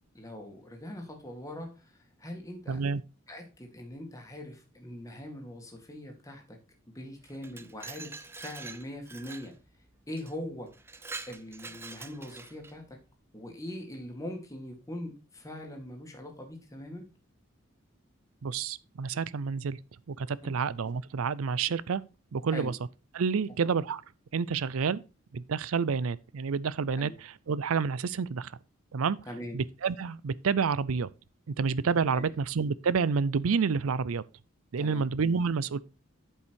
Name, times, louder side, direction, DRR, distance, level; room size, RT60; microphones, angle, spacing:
voice 1, 0.1-2.8 3.3-6.6 6.9-9.5 10.1-10.7 11.0-13.0 13.3-17.1 20.4-20.5 22.5-22.7 27.0-27.1 29.3-29.6 32.1-32.3 34.8-35.1, left 1 dB, 15° left, 2.0 m, -42 dB
voice 2, 2.7-3.0 18.4-19.8 20.1-22.0 22.3-22.8 23.1-24.0 24.3-25.0 25.3-28.5 28.9-29.2 29.5-31.1 31.5-34.2 34.7-35.8, right 5 dB, 90° right, 0.5 m, -29 dB
Glass, 7.2-9.5 10.2-10.3 10.7-12.8, right 4 dB, 10° right, 0.4 m, -44 dB
8.4 x 5.4 x 4.6 m
head